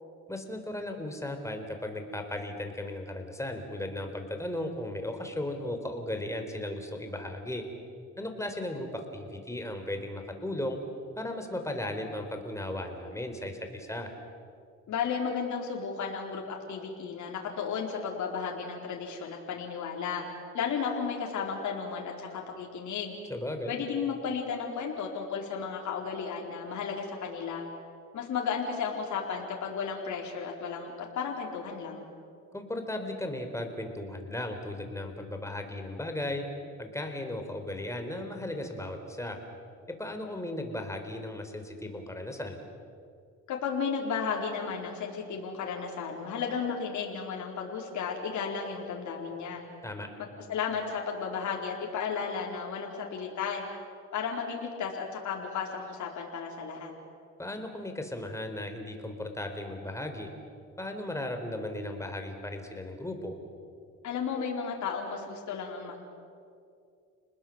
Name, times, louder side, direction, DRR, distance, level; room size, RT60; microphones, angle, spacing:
voice 1, 0.3-7.6 8.2-10.8 11.2-14.1 23.3-23.7 32.5-36.4 36.8-39.4 39.9-42.6 49.8-50.1 57.4-60.3 60.8-63.4, left 1 dB, 10° left, 5 dB, 4.3 m, -36 dB
voice 2, 14.9-20.2 20.5-23.2 23.7-27.7 28.1-32.0 43.5-49.6 50.2-53.7 54.1-56.9 64.0-66.0, left 6 dB, 70° left, 0 dB, 4.3 m, -34 dB
30.0 x 20.0 x 7.9 m, 2.4 s
cardioid pair, 90°, 30 cm